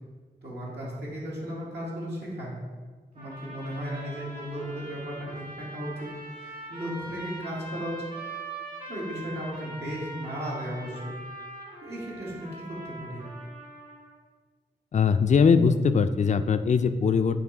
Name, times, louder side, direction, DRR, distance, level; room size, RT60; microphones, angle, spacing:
voice 1, 0.4-2.5 3.1-8.0 8.9-11.1 11.8-13.2, equal, 80° right, -6 dB, 2.0 m, -35 dB
sound 1, 3.1-14.2, right 2 dB, 50° right, 2.0 m, -42 dB
voice 2, 14.9-17.4, left 5 dB, 45° left, 10 dB, 0.4 m, -21 dB
8.9 x 3.1 x 4.7 m, 1.4 s
wide cardioid pair, 65°, 17 cm